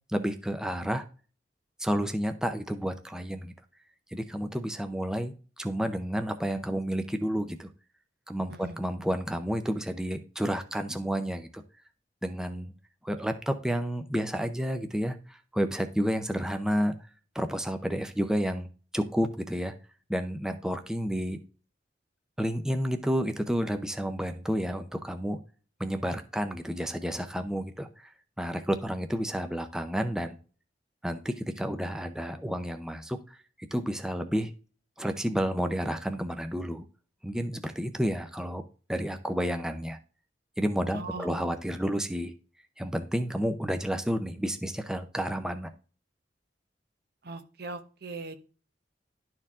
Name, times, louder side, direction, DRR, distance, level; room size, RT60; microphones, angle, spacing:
voice 1, 0.1-1.1 1.8-3.5 4.1-7.7 8.3-11.6 12.2-12.7 13.0-16.9 17.3-18.7 18.9-19.7 20.1-21.4 22.4-25.4 25.8-28.1 28.4-30.4 31.0-33.4 33.7-34.5 35.0-36.8 37.2-38.6 38.9-40.0 40.6-42.3 42.8-45.7, equal, 5° right, 7 dB, 0.6 m, -30 dB
voice 2, 40.9-41.3 47.2-48.4, right 3 dB, 60° right, 9 dB, 0.9 m, -39 dB
11.5 x 4.5 x 3.6 m, 0.37 s
head